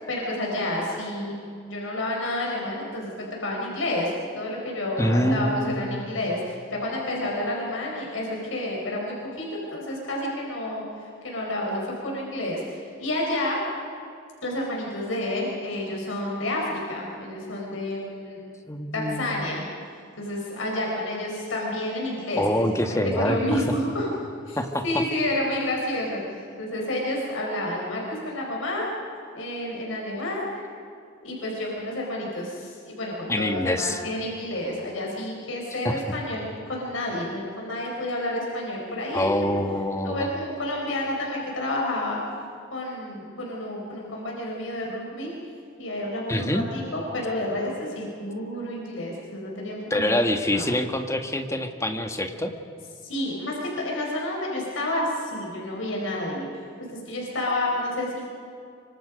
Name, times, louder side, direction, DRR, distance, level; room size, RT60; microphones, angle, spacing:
voice 1, 0.1-10.8 11.2-13.6 14.4-18.4 18.9-19.7 20.2-22.4 22.8-24.1 24.5-24.6 24.8-28.9 29.3-30.6 31.2-39.3 40.0-42.2 42.7-45.3 45.8-50.2 50.5-50.9 53.0-56.5 56.9-58.3, left 1 dB, 85° left, -2 dB, 4.9 m, -30 dB
voice 2, 5.0-6.0 18.7-19.4 22.3-23.6 24.5-25.0 33.3-34.0 35.8-36.0 39.1-40.3 46.3-46.7 49.9-52.5, left 1 dB, 15° left, 5 dB, 1.5 m, -25 dB
26.0 x 24.5 x 5.2 m, 2.5 s
head